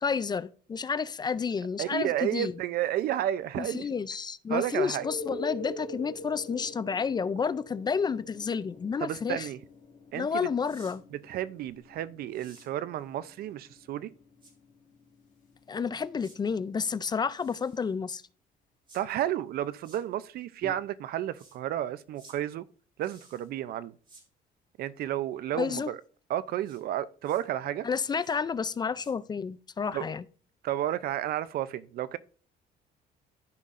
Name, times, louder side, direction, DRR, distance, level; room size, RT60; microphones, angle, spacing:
voice 1, 0.0-2.5 3.6-9.5 10.1-11.0 15.7-18.2 25.5-25.9 27.8-30.2, left 6 dB, 25° left, 0.4 m, -30 dB
voice 2, 1.8-3.9 4.5-5.1 9.0-9.6 10.1-10.5 11.1-14.1 18.9-22.6 23.0-23.9 24.8-26.0 26.3-27.9 29.9-30.1 30.6-32.2, right 12 dB, 65° right, 0.5 m, -32 dB
sound 1, 4.8-16.4 20.6-20.7, left 2 dB, 50° left, 2.1 m, -45 dB
sound 2, 10.6-11.0 12.3-12.7 14.4-14.5 16.2-16.4 17.3-17.9 18.9-19.0 19.8-20.0 21.3-21.6 22.1-22.4 23.0-23.5 24.0-24.2 26.6-26.8 27.2-27.4 28.2-28.4 28.6-29.1, right 2 dB, 30° right, 3.2 m, -56 dB
13.5 x 5.6 x 2.5 m
cardioid pair, 110°, 17 cm